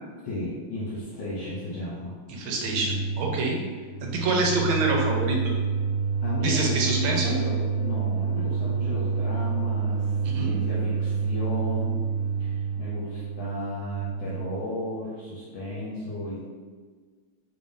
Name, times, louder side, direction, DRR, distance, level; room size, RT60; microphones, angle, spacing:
voice 1, 0.2-2.1 6.2-10.1 10.4-12.0 12.5-16.4, left 1 dB, 70° left, -8 dB, 1.4 m, -34 dB
voice 2, 2.3-3.6 4.0-5.4 6.4-7.4 10.2-10.5, right 2 dB, 85° right, 0 dB, 1.4 m, -26 dB
sound 1, 2.6-14.4, right 6 dB, 45° right, 0.5 m, -28 dB
3.4 x 3.4 x 2.6 m, 1.5 s
omnidirectional pair, 2.3 m